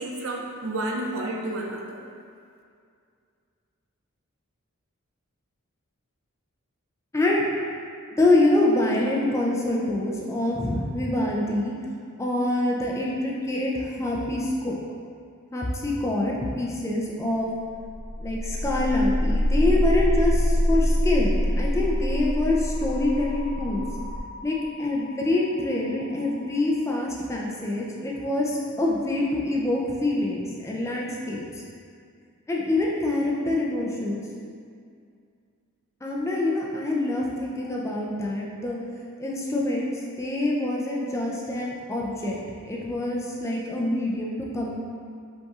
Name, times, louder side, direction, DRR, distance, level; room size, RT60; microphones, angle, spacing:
voice 1, 0.0-2.0, right 1 dB, 70° right, 1 dB, 0.5 m, -31 dB
voice 2, 7.1-7.4 8.2-11.8 12.2-14.8 15.5-17.5 18.2-23.8 24.4-31.4 32.5-34.2 36.0-38.8 39.2-39.9 40.2-42.4 42.7-44.8, left 2 dB, 15° left, -3 dB, 0.4 m, -25 dB
sound 1, 17.6-27.6, equal, 70° left, 0.6 m, -26 dB
5.4 x 4.2 x 2.4 m, 2.3 s
head